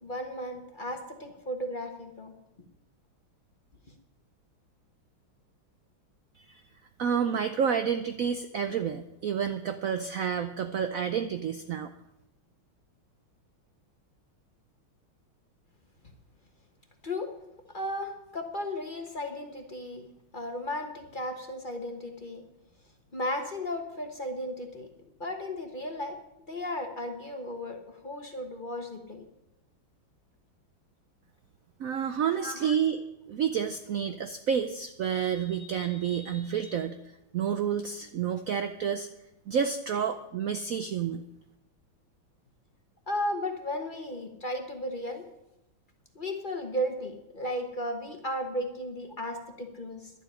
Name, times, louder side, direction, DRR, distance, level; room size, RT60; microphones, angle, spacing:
voice 1, 0.0-2.3 17.0-17.3 17.7-20.1 20.3-22.4 23.1-24.9 25.2-26.2 26.5-29.2 32.3-32.7 43.1-45.2 46.1-50.1, left 1 dB, 30° left, 4 dB, 1.1 m, -35 dB
voice 2, 7.0-11.9 31.8-33.0 33.3-37.0 37.3-39.1 39.5-41.2, right 7 dB, 80° right, 9 dB, 0.7 m, -29 dB
11.5 x 7.4 x 9.9 m, 0.90 s
omnidirectional pair, 2.2 m